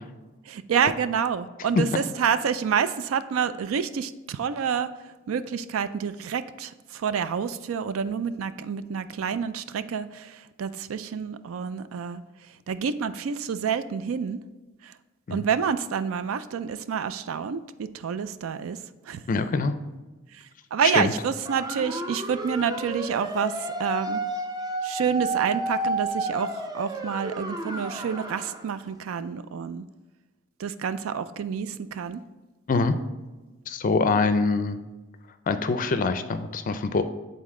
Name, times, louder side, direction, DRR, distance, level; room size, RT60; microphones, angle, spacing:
voice 1, 0.5-4.9 5.3-12.2 12.7-14.4 14.8-14.9 15.3-18.8 19.1-19.2 20.3-20.4 20.7-24.2 24.8-29.8 30.6-32.2, right 7 dB, 85° right, 13 dB, 0.4 m, -28 dB
voice 2, 19.3-19.8 20.9-21.1 32.7-33.0 33.7-34.8 35.5-37.0, left 3 dB, 40° left, 10 dB, 0.4 m, -24 dB
sound 1, 21.5-28.7, right 2 dB, 20° right, 0.5 m, -31 dB
8.4 x 4.0 x 3.7 m, 1.2 s
head